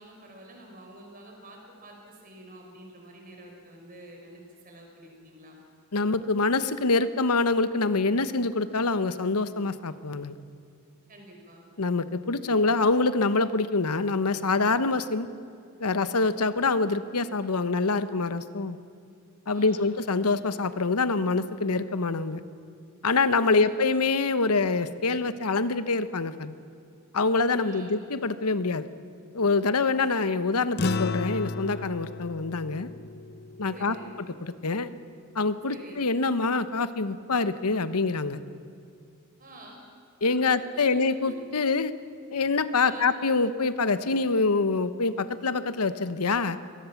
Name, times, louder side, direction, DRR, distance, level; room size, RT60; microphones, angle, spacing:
voice 1, 0.0-5.6 11.1-11.6 19.5-19.9 23.4-23.8 27.6-28.0 33.7-34.1 35.7-36.0 39.4-39.8 40.2-40.3 40.7-41.0 41.2-41.3 42.8-43.1, right 1 dB, 40° right, 1 dB, 5.1 m, -48 dB
voice 2, 5.9-10.4 11.8-15.3 15.8-18.8 19.5-22.4 23.0-26.6 27.1-28.9 29.3-32.9 33.6-33.9 34.4-34.9 35.3-38.4 40.2-41.9 42.3-46.6, left 3 dB, 85° left, 13 dB, 1.0 m, -25 dB
sound 1, 30.8-35.4, left 3 dB, 45° left, 0.5 m, -34 dB
24.0 x 19.0 x 7.2 m, 2.5 s
head